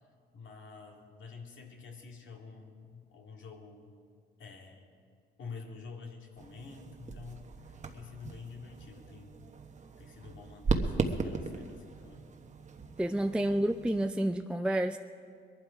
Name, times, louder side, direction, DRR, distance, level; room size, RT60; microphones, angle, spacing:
voice 1, 0.3-3.9 4.4-4.9 5.4-9.4 10.0-12.3, left 5 dB, 70° left, 1 dB, 2.2 m, -48 dB
sound 1, 6.4-14.1, right 4 dB, 35° right, 1.2 m, -37 dB
voice 2, 13.0-15.0, right 1 dB, 5° right, 6 dB, 0.4 m, -29 dB
21.5 x 11.5 x 5.1 m, 2.2 s
cardioid pair, 90°, 20 cm